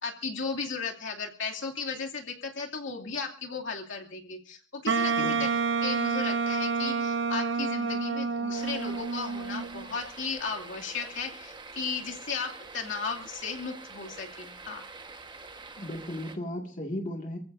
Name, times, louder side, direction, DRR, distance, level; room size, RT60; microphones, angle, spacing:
voice 1, 0.0-5.5 5.8-14.8, left 5 dB, 70° left, 0 dB, 2.6 m, -35 dB
Wind instrument woodwind instrument, 4.9-9.9, right 4 dB, 65° right, 1.1 m, -28 dB
sound 1, 8.5-16.4, right 3 dB, 25° right, 1.3 m, -46 dB
voice 2, 15.8-17.4, left 1 dB, 40° left, 2 dB, 2.1 m, -35 dB
28.5 x 15.5 x 2.7 m, 0.40 s
head